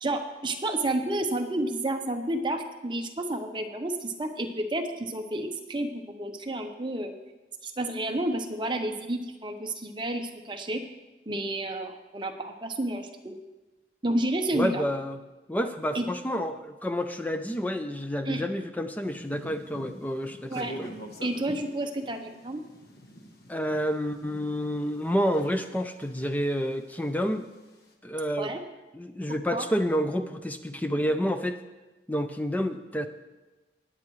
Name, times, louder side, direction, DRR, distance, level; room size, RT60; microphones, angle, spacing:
voice 1, 0.0-7.1 7.6-10.8 11.3-13.3 14.0-14.8 15.9-16.1 18.2-18.4 20.5-20.8 21.2-22.6 28.4-28.6 29.5-29.7, right 1 dB, 25° right, 4 dB, 0.8 m, -30 dB
voice 2, 14.5-15.2 15.5-20.9 23.5-27.5 28.0-28.5 28.9-31.6 32.1-33.1, equal, 10° left, 8 dB, 0.4 m, -29 dB
sound 1, 19.0-25.7 26.0-27.9, equal, 60° left, 1.2 m, -46 dB
19.0 x 8.7 x 3.1 m, 1.1 s
head